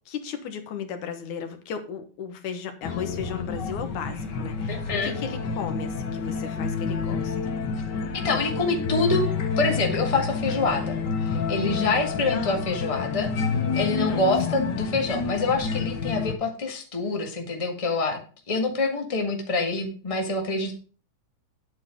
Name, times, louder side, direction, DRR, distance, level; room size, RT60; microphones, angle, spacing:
voice 1, 0.1-7.4 12.3-12.6 14.0-14.3, left 7 dB, 90° left, 8 dB, 2.8 m, -35 dB
sound 1, 2.8-16.3, left 5 dB, 55° left, 1.2 m, -29 dB
voice 2, 4.7-5.1 8.1-9.2 9.6-13.3 13.8-18.2 18.5-20.7, left 3 dB, 15° left, 3 dB, 1.3 m, -26 dB
9.9 x 8.5 x 3.8 m, 0.39 s
omnidirectional pair, 3.3 m